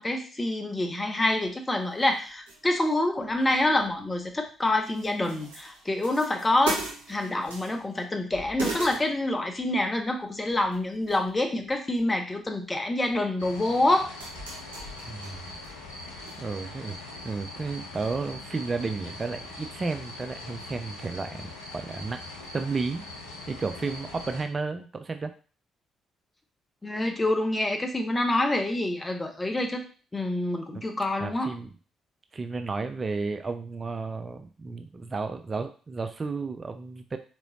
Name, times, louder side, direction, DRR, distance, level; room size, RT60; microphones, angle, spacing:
voice 1, 0.0-6.8 7.1-14.1 26.8-29.8 30.1-31.5, left 1 dB, 20° left, 4 dB, 0.8 m, -27 dB
sound 1, 1.4-1.5 1.9-2.9 3.2-4.5 4.8-8.0 8.3-9.7 10.5-11.3 11.6-12.1 13.1-13.2 13.8-16.4 16.6-16.7 17.2-17.3, right 3 dB, 80° right, 0.9 m, -39 dB
sound 2, 13.4-24.4, left 2 dB, 85° left, 0.5 m, -42 dB
voice 2, 15.1-15.6 16.4-22.2 22.5-23.0 23.5-25.3 30.7-30.8 31.2-31.7 32.3-37.2, right 4 dB, 35° right, 7 dB, 0.3 m, -33 dB
3.8 x 3.0 x 2.7 m, 0.38 s
figure-of-eight pair, 45°, 0 cm